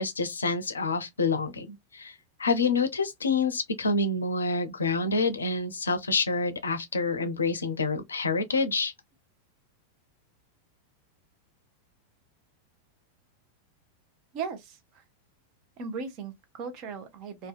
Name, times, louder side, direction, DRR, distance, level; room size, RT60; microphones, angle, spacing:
voice 1, 0.0-2.1 2.4-8.9, left 3 dB, 75° left, 0.5 m, -27 dB
voice 2, 14.3-15.0 15.8-17.5, right 5 dB, 40° right, 0.6 m, -37 dB
2.6 x 2.2 x 2.3 m
figure-of-eight pair, 90°, 0 cm